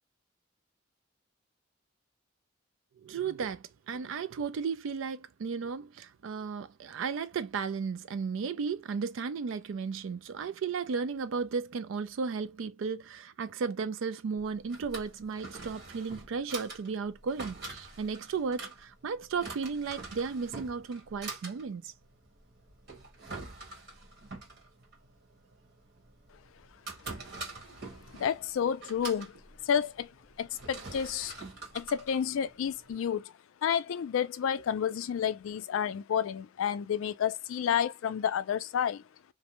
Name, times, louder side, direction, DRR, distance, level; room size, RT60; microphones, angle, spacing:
voice 1, 3.0-21.9, right 5 dB, 70° right, 0.3 m, -34 dB
Drawer open or close, 14.4-32.9, right 3 dB, 50° right, 1.1 m, -45 dB
voice 2, 28.1-30.1 30.4-31.3 31.7-33.3 33.6-39.0, left 8 dB, 75° left, 0.3 m, -30 dB
2.6 x 2.1 x 2.9 m
head